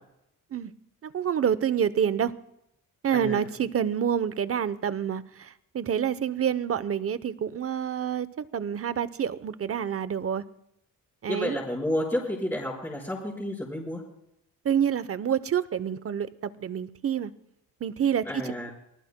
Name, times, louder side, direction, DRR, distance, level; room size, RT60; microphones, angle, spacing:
voice 1, 1.0-2.3 3.0-10.4 11.2-11.6 14.6-17.3 17.8-18.4, right 8 dB, 45° right, 15 dB, 0.8 m, -27 dB
voice 2, 3.1-3.4 11.3-14.0 18.2-18.7, left 1 dB, 10° left, -7 dB, 4.3 m, -30 dB
25.5 x 19.5 x 2.2 m, 0.82 s
cardioid pair, 115°, 34 cm